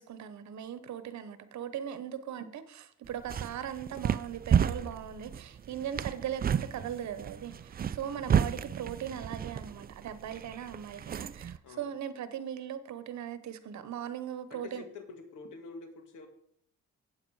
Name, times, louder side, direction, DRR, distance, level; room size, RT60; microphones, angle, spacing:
voice 1, 0.0-14.8, right 9 dB, 65° right, 1.1 m, -39 dB
sound 1, 3.0-11.6, right 8 dB, 30° right, 0.4 m, -32 dB
voice 2, 8.3-8.6 11.6-12.0 14.5-16.3, left 4 dB, 85° left, 1.8 m, -47 dB
8.8 x 8.3 x 4.8 m
cardioid pair, 90°, 30 cm